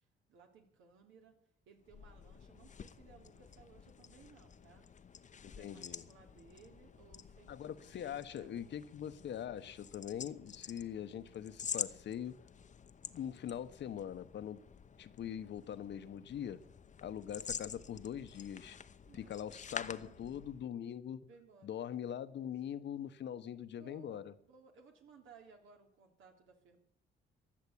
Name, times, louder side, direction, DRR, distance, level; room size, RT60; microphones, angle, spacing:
voice 1, 0.0-1.4 1.6-4.9 5.3-8.6 17.2-17.6 19.1-20.1 21.3-21.7 23.8-26.8, right 5 dB, 80° right, 3 dB, 3.3 m, -61 dB
sound 1, 1.8-20.7, left 7 dB, 40° left, 0.8 m, -48 dB
voice 2, 5.4-6.0 7.5-12.4 13.1-14.6 15.0-16.6 17.0-18.8 19.1-21.2 21.6-24.3, left 9 dB, 65° left, 12 dB, 1.1 m, -42 dB
14.5 x 10.5 x 8.6 m, 0.74 s
cardioid pair, 90°, 20 cm